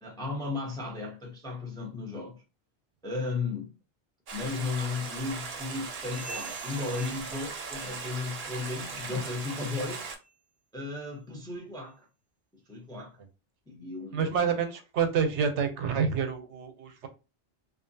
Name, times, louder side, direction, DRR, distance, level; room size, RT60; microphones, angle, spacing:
voice 1, 0.0-2.4 3.0-3.7 4.3-10.1 10.7-12.1 12.7-13.2 13.7-14.6, left 3 dB, 5° left, 0.4 m, -35 dB
Stream, 4.3-10.2, right 4 dB, 55° right, 0.7 m, -39 dB
sound 1, 6.0-8.2 8.5-8.9 9.3-9.6 10.2-10.4 11.0-11.1 11.9-12.0, right 4 dB, 35° left, 0.9 m, -48 dB
voice 2, 14.1-17.1, right 6 dB, 85° right, 0.9 m, -28 dB
2.5 x 2.4 x 2.6 m
omnidirectional pair, 1.2 m